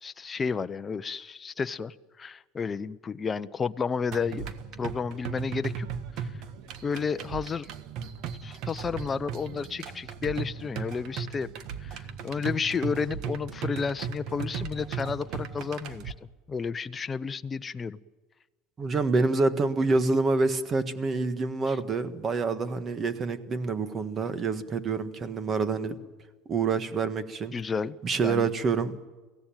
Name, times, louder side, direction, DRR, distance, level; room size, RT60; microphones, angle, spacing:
voice 1, 0.0-5.9 6.2-6.3 6.8-7.7 8.4-11.5 11.8-16.1 16.5-18.0 21.7-21.8 27.5-28.5, left 5 dB, 25° left, 12 dB, 0.7 m, -32 dB
sound 1, 4.1-16.1, right 6 dB, 60° right, 1.5 m, -37 dB
voice 2, 18.8-26.0 26.4-27.5 28.0-29.0, right 4 dB, 30° right, 11 dB, 1.6 m, -27 dB
23.0 x 16.5 x 9.1 m, 1.3 s
supercardioid pair, 115°, 0 cm